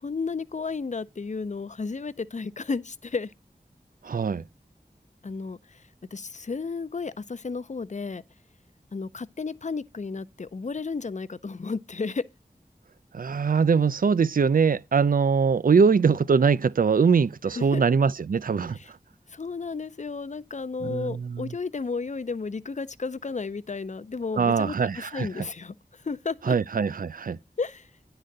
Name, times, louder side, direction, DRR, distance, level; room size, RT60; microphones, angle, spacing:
voice 1, 0.0-3.3 5.2-5.8 6.1-8.2 8.9-12.2 17.5-17.8 18.8-18.9 19.3-26.6 27.6-27.9, left 4 dB, 45° left, 0.4 m, -33 dB
voice 2, 4.0-4.4 13.1-18.8 20.8-21.5 24.4-25.5 26.4-27.4, right 5 dB, 60° right, 0.4 m, -22 dB
9.9 x 4.0 x 6.4 m
wide cardioid pair, 50°, 17 cm